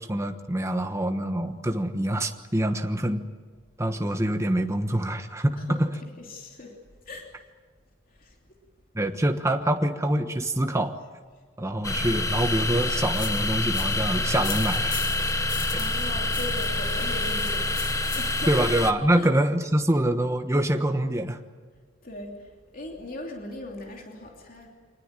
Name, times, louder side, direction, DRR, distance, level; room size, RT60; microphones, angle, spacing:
voice 1, 0.0-3.2 3.8-5.9 8.9-11.0 11.6-15.0 18.5-21.4, right 1 dB, 15° right, 6 dB, 1.2 m, -25 dB
voice 2, 6.2-6.7 7.0-7.3 8.1-8.4 15.7-17.8 18.1-18.7 19.2-19.3 22.0-24.7, left 2 dB, 40° left, 0 dB, 3.1 m, -39 dB
sound 1, 11.8-18.9, left 2 dB, 15° left, 0.9 m, -27 dB
sound 2, 13.1-18.6, left 10 dB, 55° left, 1.6 m, -41 dB
25.5 x 19.5 x 9.1 m, 1.5 s
head